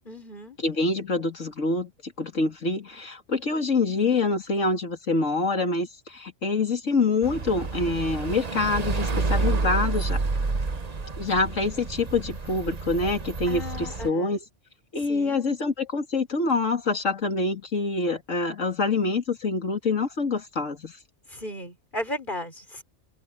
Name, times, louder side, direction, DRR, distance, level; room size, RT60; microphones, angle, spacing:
voice 1, 0.1-0.6 10.4-10.7 13.5-14.4 15.1-15.4 21.3-22.8, left 1 dB, 40° left, 5.6 m, -36 dB
voice 2, 0.6-10.2 11.2-14.4 14.9-20.9, left 3 dB, 90° left, 3.0 m, -26 dB
sound 1, 7.2-14.1, right 3 dB, 35° right, 1.2 m, -29 dB
omnidirectional pair, 1.3 m